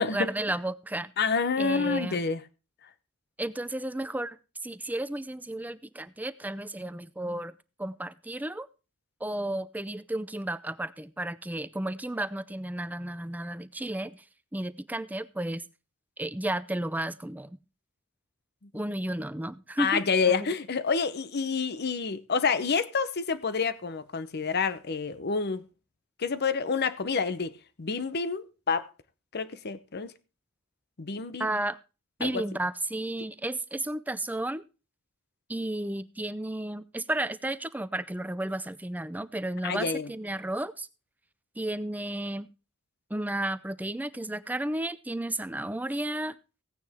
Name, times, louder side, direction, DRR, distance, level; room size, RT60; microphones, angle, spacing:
voice 1, 0.0-1.1 1.6-2.2 3.4-4.4 4.6-8.7 9.2-14.2 14.5-15.6 16.2-17.6 18.7-20.5 31.4-31.8 32.2-34.6 35.5-40.9 41.6-42.5 43.1-46.3, right 1 dB, 10° right, 0.5 m, -33 dB
voice 2, 1.2-2.4 19.8-25.6 26.2-27.5 27.8-28.9 29.3-30.1 31.0-31.5 32.2-32.4 39.6-40.1, left 5 dB, 50° left, 0.8 m, -28 dB
16.5 x 9.3 x 3.6 m
head